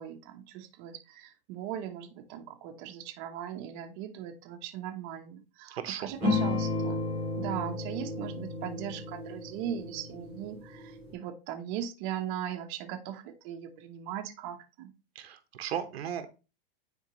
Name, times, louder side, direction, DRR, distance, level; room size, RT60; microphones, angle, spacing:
voice 1, 0.0-7.0 7.4-14.9, right 10 dB, 40° right, 4 dB, 1.1 m, -39 dB
voice 2, 5.8-6.3 15.1-16.3, right 9 dB, 90° right, 8 dB, 1.2 m, -36 dB
sound 1, 6.2-11.1, left 3 dB, 15° left, 3.5 m, -33 dB
9.5 x 4.6 x 3.1 m, 0.30 s
supercardioid pair, 150°, 30 cm